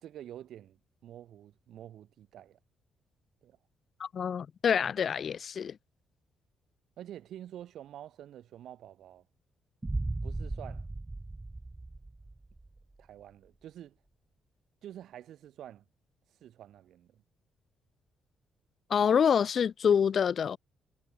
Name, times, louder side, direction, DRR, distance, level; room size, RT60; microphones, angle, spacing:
voice 1, 0.0-2.6 3.4-3.6 7.0-9.2 10.2-10.9 13.0-14.0 14.8-15.9 16.4-17.2, right 11 dB, 75° right, 2.0 m, -48 dB
voice 2, 4.0-5.8 18.9-20.6, left 7 dB, 55° left, 0.7 m, -26 dB
sound 1, 9.8-12.8, right 2 dB, 15° right, 0.6 m, -37 dB
cardioid pair, 90°, 0 cm